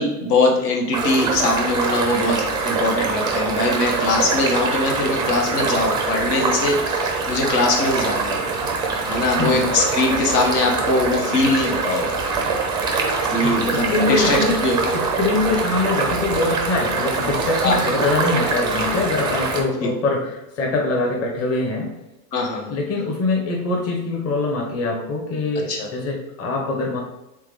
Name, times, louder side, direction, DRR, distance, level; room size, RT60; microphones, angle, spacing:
voice 1, 0.0-8.4 9.1-12.1 13.3-14.8 17.6-17.8 19.8-19.9 22.3-22.7 25.7-25.9, left 2 dB, 70° left, 0 dB, 1.1 m, -21 dB
sound 1, 0.9-19.6, right 4 dB, 10° right, 0.3 m, -24 dB
voice 2, 9.4-9.7 13.3-14.6 14.9-21.9 22.7-27.0, left 3 dB, 30° left, 0 dB, 1.0 m, -23 dB
3.5 x 3.4 x 3.5 m, 0.92 s
hypercardioid pair, 100°, 49 cm